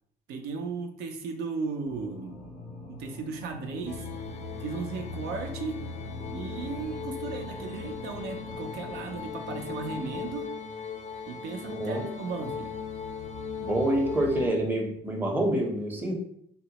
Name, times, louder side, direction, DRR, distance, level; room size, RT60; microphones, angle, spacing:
voice 1, 0.3-2.4 2.9-4.1 4.6-5.8 6.3-10.5 11.3-12.7, right 4 dB, 75° right, 4 dB, 0.5 m, -36 dB
sound 1, 1.8-10.4, left 2 dB, 85° left, 0.7 m, -45 dB
sound 2, 3.9-14.5, left 5 dB, 45° left, 0.4 m, -38 dB
voice 2, 11.7-12.0 13.7-16.1, right 1 dB, 10° right, 0 dB, 0.6 m, -27 dB
3.5 x 2.1 x 2.8 m, 0.69 s
cardioid pair, 110°, 17 cm